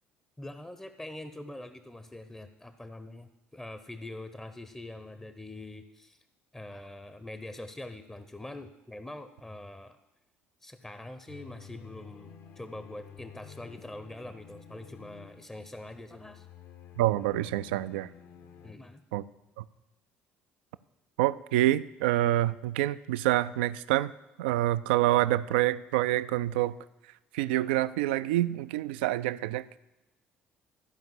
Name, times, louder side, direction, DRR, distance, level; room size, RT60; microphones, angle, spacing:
voice 1, 0.4-6.2 6.5-10.0 10.6-16.5 18.6-19.0, left 1 dB, 10° left, 10 dB, 0.7 m, -44 dB
sound 1, 11.3-18.7, left 7 dB, 55° left, 0.9 m, -51 dB
voice 2, 17.0-18.1 19.1-19.2 19.6-19.7 21.2-24.1 24.4-26.8 27.3-29.8, right 15 dB, 70° right, 16 dB, 0.3 m, -27 dB
13.5 x 5.2 x 7.3 m, 1.0 s
figure-of-eight pair, 55°, 6 cm